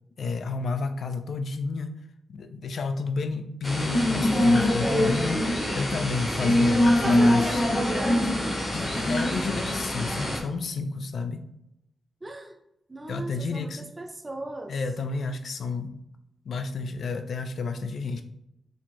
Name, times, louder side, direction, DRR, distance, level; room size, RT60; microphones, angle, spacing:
voice 1, 0.2-2.0 2.3-7.6 8.7-11.4 13.1-13.9 14.7-16.0 16.5-18.2, left 4 dB, 65° left, 8 dB, 0.4 m, -31 dB
sound 1, 3.6-10.4, left 1 dB, 15° left, 0.9 m, -23 dB
voice 2, 7.0-8.5 12.2-12.6 12.9-14.8, right 2 dB, 20° right, 5 dB, 0.4 m, -36 dB
4.2 x 2.8 x 2.9 m, 0.82 s
wide cardioid pair, 130°, 0 cm